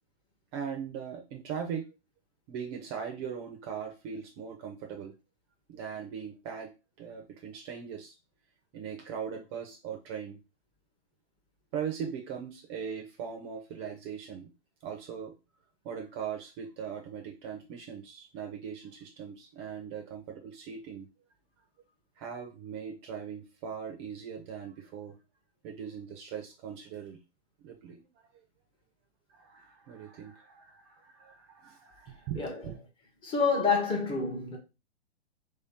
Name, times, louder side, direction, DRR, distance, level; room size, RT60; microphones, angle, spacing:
voice 1, 0.5-1.9 2.5-5.1 5.7-6.7 7.0-8.2 8.7-10.4 11.7-14.5 14.8-15.3 15.8-21.1 22.2-25.2 25.6-27.2 27.6-28.3 29.3-32.8, right 7 dB, 25° right, 0.5 m, -40 dB
voice 2, 33.2-34.6, left 4 dB, 15° left, 0.7 m, -28 dB
3.2 x 2.8 x 3.5 m
hypercardioid pair, 135°, 32 cm